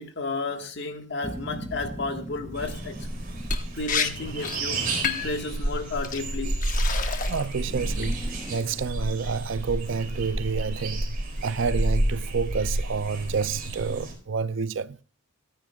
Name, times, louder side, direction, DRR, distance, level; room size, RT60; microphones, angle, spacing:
voice 1, 0.0-3.0 3.7-4.8 5.2-6.6, left 3 dB, 55° left, 1.6 m, -32 dB
sound 1, 1.2-5.2 7.6-8.6, right 1 dB, 10° right, 0.6 m, -40 dB
sound 2, 2.5-14.1, right 1 dB, 40° right, 4.2 m, -30 dB
Liquid, 3.5-3.6 3.9-4.1 4.4-4.6 5.0-5.4 6.0-6.2 6.6-7.5 7.9-8.3, left 6 dB, 35° left, 1.1 m, -29 dB
voice 2, 7.3-15.0, right 5 dB, 55° right, 0.4 m, -29 dB
25.0 x 9.6 x 2.4 m
head